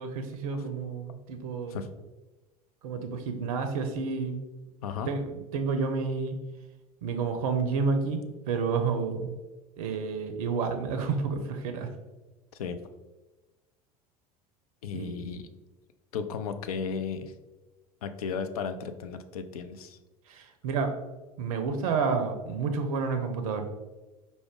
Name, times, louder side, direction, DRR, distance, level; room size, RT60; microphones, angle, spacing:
voice 1, 0.0-1.8 2.8-4.4 5.0-6.4 7.0-9.3 9.8-11.9 14.9-15.1 20.3-20.9 21.4-23.7, right 5 dB, 65° right, 6 dB, 0.5 m, -30 dB
voice 2, 14.8-15.5 16.1-17.3 18.0-20.0, left 6 dB, 70° left, 9 dB, 0.4 m, -34 dB
4.8 x 2.0 x 3.5 m, 1.1 s
figure-of-eight pair, 70°, 20 cm